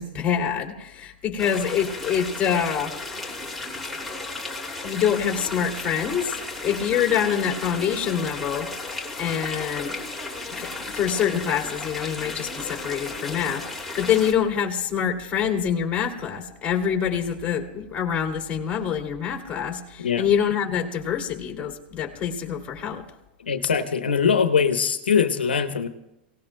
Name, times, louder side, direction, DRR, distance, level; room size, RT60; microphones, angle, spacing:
voice 1, 0.0-3.0 4.8-8.7 9.2-10.0 10.5-23.0, left 8 dB, 25° left, 1 dB, 2.7 m, -26 dB
sound 1, 1.4-14.3, left 3 dB, ahead, 2.5 m, -34 dB
voice 2, 23.4-25.9, left 6 dB, 90° left, 8 dB, 1.0 m, -22 dB
29.0 x 18.0 x 2.2 m, 0.90 s
hypercardioid pair, 110°, 5 cm